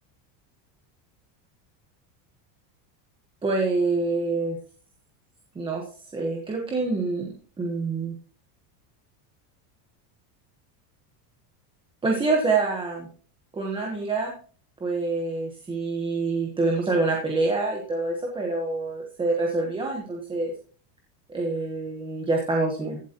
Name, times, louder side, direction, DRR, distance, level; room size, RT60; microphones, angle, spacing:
voice 1, 3.4-4.6 5.5-7.3 7.6-8.2 12.0-13.1 13.5-14.3 14.8-20.5 21.3-23.0, right 3 dB, 10° right, 0 dB, 1.1 m, -26 dB
15.5 x 8.1 x 3.0 m, 0.42 s
cardioid pair, 175°, 49 cm